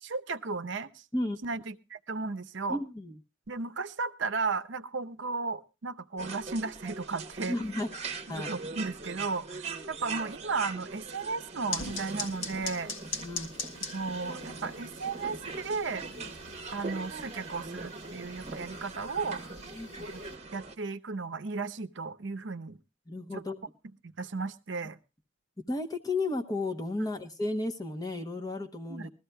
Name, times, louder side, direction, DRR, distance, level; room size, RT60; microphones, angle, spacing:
voice 1, 0.0-1.0 1.4-2.8 3.5-7.6 8.4-12.9 13.9-16.0 16.7-19.4 20.5-22.8 23.3-23.4 24.0-25.0 28.9-29.1, right 4 dB, 60° right, 10 dB, 0.7 m, -35 dB
voice 2, 2.7-3.2 7.5-7.9 8.3-8.5 13.2-13.5 16.2-16.3 19.7-19.9 23.1-23.6 25.7-29.1, left 2 dB, 20° left, 7 dB, 0.8 m, -33 dB
sound 1, 6.2-20.8, right 4 dB, 30° right, 1.0 m, -41 dB
sound 2, 11.7-20.4, left 4 dB, 70° left, 1.6 m, -42 dB
21.5 x 14.0 x 2.2 m, 0.29 s
head